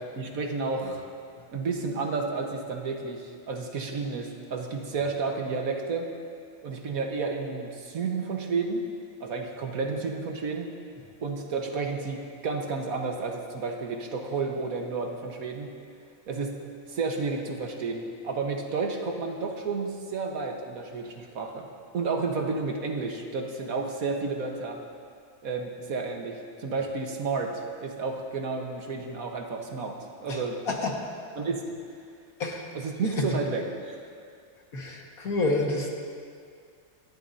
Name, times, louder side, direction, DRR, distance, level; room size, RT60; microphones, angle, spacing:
voice 1, 0.2-1.0 1.5-6.1 6.6-8.9 9.2-10.7 11.2-15.7 16.3-16.5 16.9-21.7 21.9-24.8 25.4-30.0 30.2-30.6 31.4-31.6 32.7-34.0, right 4 dB, 85° right, 2 dB, 1.7 m, -31 dB
voice 2, 34.7-36.0, left 2 dB, 85° left, -1 dB, 2.2 m, -28 dB
27.0 x 12.0 x 2.8 m, 2.2 s
omnidirectional pair, 1.5 m